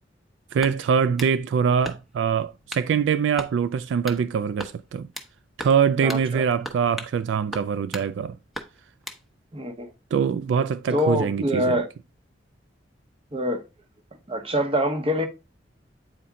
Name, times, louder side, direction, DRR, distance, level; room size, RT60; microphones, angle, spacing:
voice 1, 0.5-5.1 5.6-8.4 10.1-11.8, right 7 dB, 75° right, 0.3 m, -23 dB
sound 1, 0.6-1.4 1.8-2.3 2.7-2.9 3.4-3.6 4.1-4.2 4.6-5.3 5.6-5.8 6.1-6.3 6.6-7.2 7.5-8.1 8.5-9.2, equal, ahead, 0.9 m, -37 dB
voice 2, 6.0-6.4 9.5-9.9 10.9-11.9 13.3-13.6 14.3-15.3, equal, 30° right, 1.1 m, -25 dB
8.7 x 4.2 x 3.7 m
head